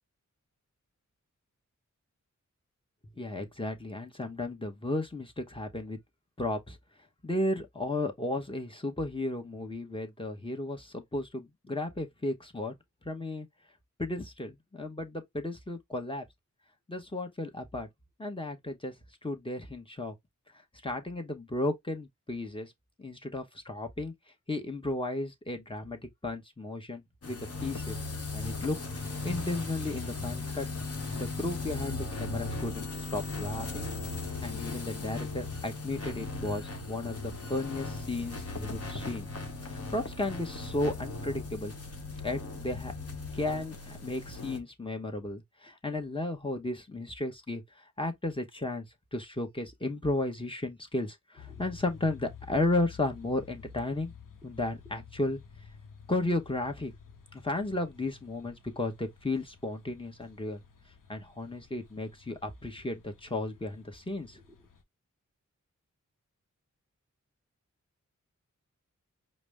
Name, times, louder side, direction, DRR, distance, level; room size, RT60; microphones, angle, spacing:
voice 1, 3.2-6.0 6.4-6.8 7.2-12.7 13.0-13.5 14.0-16.2 16.9-17.9 18.2-18.9 19.2-20.1 20.8-22.7 23.0-24.1 24.5-28.0 28.3-30.7 31.1-33.9 34.4-39.3 39.6-41.7 42.2-42.9 43.3-48.9 49.1-54.1 54.4-55.4 56.1-56.9 57.3-60.6 61.1-64.4, left 2 dB, 15° left, 1.1 m, -34 dB
sound 1, 27.2-44.6, left 3 dB, 50° left, 1.0 m, -37 dB
sound 2, 51.4-64.8, left 6 dB, 85° left, 0.8 m, -52 dB
5.0 x 2.1 x 3.4 m
cardioid pair, 55°, 31 cm